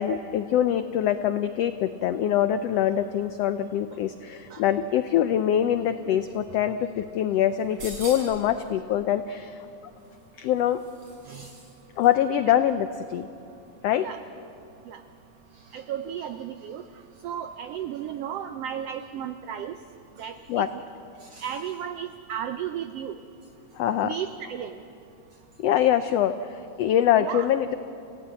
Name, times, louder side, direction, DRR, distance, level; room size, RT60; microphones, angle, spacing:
voice 1, 0.0-9.6 10.4-10.8 12.0-13.3 13.8-14.1 20.5-20.7 23.8-24.1 25.6-27.8, left 10 dB, 90° left, 10 dB, 1.4 m, -24 dB
sound 1, 7.5-8.5 10.0-11.7 12.0-12.1, right 2 dB, 45° right, 7.7 m, -42 dB
voice 2, 15.7-16.8 17.2-19.8 20.2-20.8 21.2-23.2 24.0-24.8 27.2-27.5, right 9 dB, 85° right, 9 dB, 1.3 m, -34 dB
28.5 x 16.5 x 8.3 m, 2.7 s
omnidirectional pair, 3.6 m